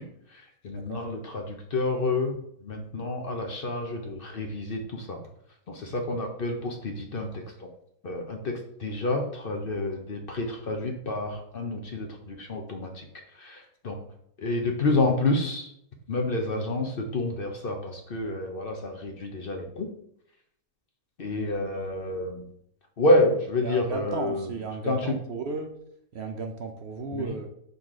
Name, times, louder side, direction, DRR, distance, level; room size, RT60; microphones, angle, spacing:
voice 1, 0.0-5.2 5.7-7.7 8.0-13.1 13.3-14.0 14.4-15.7 16.1-19.9 21.2-22.5 23.0-24.5 24.8-25.1 27.1-27.3, left 2 dB, 50° left, 3 dB, 0.9 m, -29 dB
voice 2, 23.6-25.7 26.1-27.5, right 4 dB, 60° right, 5 dB, 0.8 m, -34 dB
6.3 x 4.0 x 3.7 m, 0.72 s
omnidirectional pair, 1.4 m